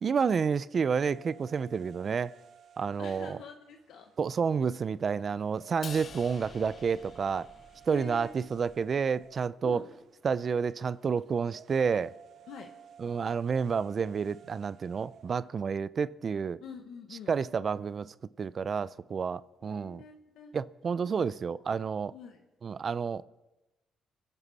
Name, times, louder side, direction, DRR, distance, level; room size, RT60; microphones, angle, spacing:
voice 1, 0.0-2.3 2.8-3.4 4.2-7.5 7.9-9.8 10.2-12.1 13.0-16.6 17.3-20.0 20.5-22.1 22.6-23.2, right 6 dB, 45° right, 0.4 m, -30 dB
sound 1, 1.0-15.5, right 8 dB, 65° right, 1.2 m, -55 dB
voice 2, 3.0-4.1 7.9-8.3 9.6-9.9 12.5-12.7 16.6-17.3 19.6-20.5 21.5-21.6 22.1-22.4, left 6 dB, 80° left, 1.3 m, -46 dB
Crash cymbal, 5.8-8.2, left 7 dB, 50° left, 0.4 m, -48 dB
sound 2, 5.9-9.7, right 1 dB, 15° right, 2.7 m, -57 dB
25.5 x 11.0 x 4.2 m
cardioid pair, 90°, 0 cm